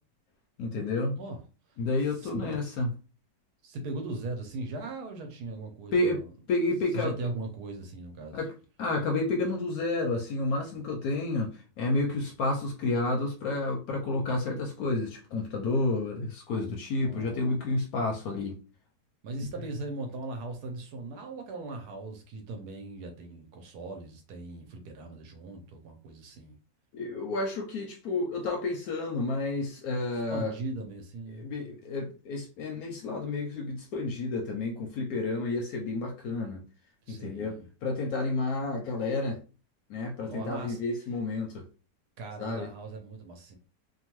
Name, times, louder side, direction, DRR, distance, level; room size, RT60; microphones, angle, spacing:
voice 1, 0.6-1.2 1.8-2.9 5.9-6.2 6.5-7.3 8.3-8.5 8.8-18.6 26.9-30.6 31.3-36.6 37.1-39.4 39.9-41.7 42.4-42.7, left 2 dB, 70° left, 0.9 m, -30 dB
voice 2, 3.6-6.2 6.9-8.4 17.0-17.5 19.2-26.6 30.1-31.5 37.1-37.6 40.3-40.8 42.2-43.6, right 2 dB, 75° right, 1.1 m, -39 dB
2.8 x 2.2 x 2.9 m
omnidirectional pair, 1.9 m